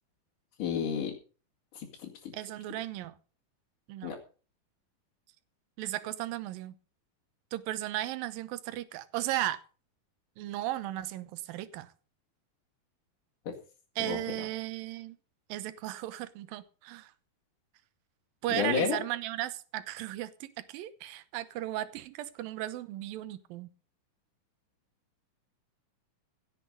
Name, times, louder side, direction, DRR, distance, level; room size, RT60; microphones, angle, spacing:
voice 1, 0.6-1.1 1.7-2.3 4.0-4.2 13.5-13.6 14.0-14.2 18.5-19.0, left 6 dB, 60° left, -3 dB, 3.6 m, -31 dB
voice 2, 2.3-3.1 3.9-4.1 5.8-6.8 7.5-9.6 10.4-11.9 14.0-15.2 15.5-17.1 18.4-23.7, right 14 dB, 75° right, 14 dB, 2.7 m, -35 dB
16.5 x 8.1 x 5.5 m, 0.37 s
omnidirectional pair, 4.2 m